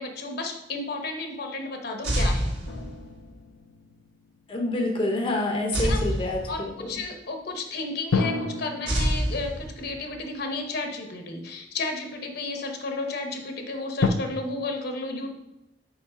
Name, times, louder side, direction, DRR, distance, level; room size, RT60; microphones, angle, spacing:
voice 1, 0.0-2.6 5.8-6.0 6.5-15.3, left 3 dB, 55° left, 4 dB, 0.9 m, -33 dB
sound 1, 2.0-3.3 5.7-7.0 8.9-10.2, right 1 dB, 75° right, 1.5 m, -27 dB
sound 2, 2.6-5.2 8.1-11.5 12.2-12.3 14.0-14.1, left 4 dB, 75° left, 0.5 m, -32 dB
voice 2, 4.5-6.9, left 2 dB, 30° left, 1 dB, 0.7 m, -27 dB
4.8 x 4.5 x 5.0 m, 0.89 s
head